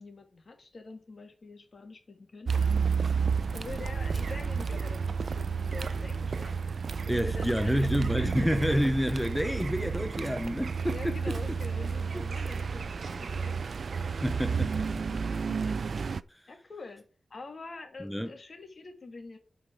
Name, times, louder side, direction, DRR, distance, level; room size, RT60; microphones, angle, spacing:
voice 1, 0.0-3.0 3.5-6.6 7.1-8.8 10.9-13.6 15.2-15.8 16.5-17.0 17.3-19.4, left 3 dB, 50° left, 2.3 m, -45 dB
Car, 2.5-16.2, right 5 dB, 65° right, 0.4 m, -31 dB
voice 2, 7.1-11.3 14.2-15.2 16.3-16.5 18.0-18.3, equal, ahead, 0.6 m, -29 dB
8.0 x 5.1 x 6.9 m
wide cardioid pair, 100°, 0 cm